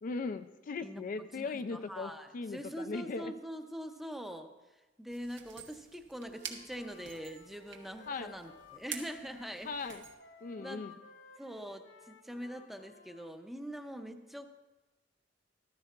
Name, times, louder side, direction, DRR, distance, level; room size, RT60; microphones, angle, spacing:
voice 1, 0.0-3.3 8.1-8.3 9.6-10.0 10.4-10.9, left 4 dB, 45° left, 10 dB, 0.4 m, -38 dB
voice 2, 0.8-4.5 5.0-9.7 10.6-11.0 11.4-14.5, equal, ahead, 6 dB, 0.6 m, -43 dB
sound 1, 5.1-10.1, right 7 dB, 75° right, 1.1 m, -48 dB
Wind instrument woodwind instrument, 6.2-13.3, left 3 dB, 80° left, 1.2 m, -56 dB
14.5 x 12.5 x 2.4 m, 1.1 s
head